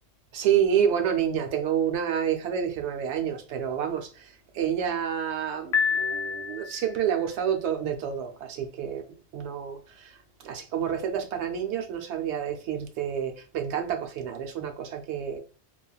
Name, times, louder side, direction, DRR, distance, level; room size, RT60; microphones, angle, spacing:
voice 1, 0.3-9.0 9.3-15.4, right 8 dB, 80° right, 0.9 m, -29 dB
Piano, 5.7-7.0, left 6 dB, 70° left, 0.8 m, -27 dB
3.2 x 2.3 x 2.3 m
omnidirectional pair, 1.2 m